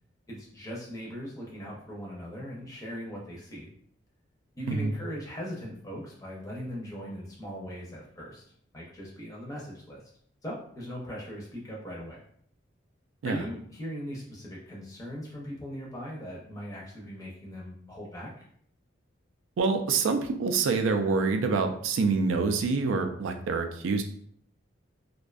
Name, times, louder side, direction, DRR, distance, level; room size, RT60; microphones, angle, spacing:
voice 1, 0.3-3.7 4.5-8.4 8.7-10.0 10.4-12.2 13.2-18.5, equal, 15° left, -4 dB, 0.5 m, -39 dB
voice 2, 19.6-24.0, right 4 dB, 90° right, 6 dB, 0.3 m, -26 dB
2.5 x 2.2 x 2.3 m, 0.63 s
head